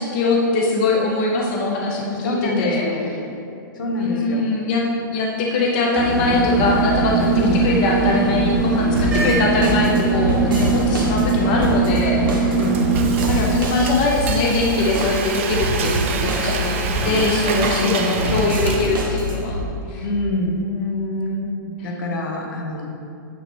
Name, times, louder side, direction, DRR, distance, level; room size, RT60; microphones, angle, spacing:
voice 1, 0.0-2.8 4.0-7.3 7.6-12.6 13.3-20.1 20.6-21.5 21.8-21.9, left 3 dB, 25° left, -2 dB, 0.5 m, -22 dB
voice 2, 2.2-3.1 3.8-4.5 7.3-7.6 8.0-8.2 9.2-9.5 12.6-12.8 17.0-18.5 20.0-20.6 21.6-22.8, left 1 dB, 70° left, 1 dB, 1.3 m, -25 dB
sound 1, 6.0-13.4, right 4 dB, 5° right, 0.8 m, -20 dB
sound 2, 9.0-19.6, right 1 dB, 80° right, 1.2 m, -26 dB
Frying (food), 12.2-19.3, right 5 dB, 35° right, 0.5 m, -28 dB
8.9 x 3.1 x 6.1 m, 2.6 s
hypercardioid pair, 180°, 11 cm